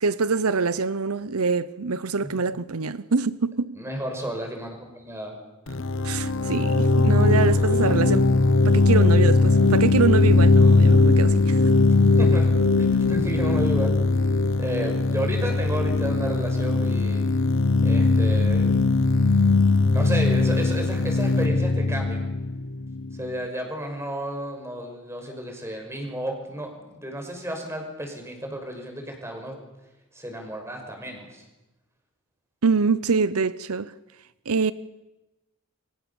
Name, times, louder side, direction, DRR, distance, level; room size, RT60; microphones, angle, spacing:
voice 1, 0.0-3.8 6.0-8.3 8.6-11.7 32.6-33.9 34.5-34.7, right 4 dB, 85° right, 0.8 m, -24 dB
voice 2, 3.8-5.4 7.6-8.1 12.2-12.5 12.8-14.0 14.6-17.3 17.8-18.8 19.9-22.3 23.1-29.6 30.1-31.4, right 1 dB, 10° right, 5.7 m, -32 dB
sound 1, 5.7-23.3, left 3 dB, 60° left, 1.0 m, -20 dB
28.5 x 24.5 x 7.1 m
head